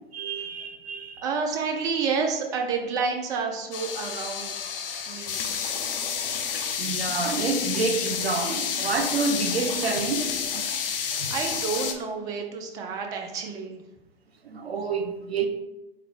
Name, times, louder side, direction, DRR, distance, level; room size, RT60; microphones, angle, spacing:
voice 1, 0.1-1.2 6.8-10.8 11.2-11.3 14.4-15.5, right 4 dB, 90° right, 6 dB, 0.6 m, -28 dB
voice 2, 1.2-4.5 5.1-5.4 11.3-13.8, right 5 dB, 15° right, 2 dB, 0.3 m, -29 dB
sound 1, 3.7-11.9, left 7 dB, 65° left, 0.6 m, -30 dB
3.8 x 3.5 x 3.1 m, 0.97 s
figure-of-eight pair, 100°, 30 cm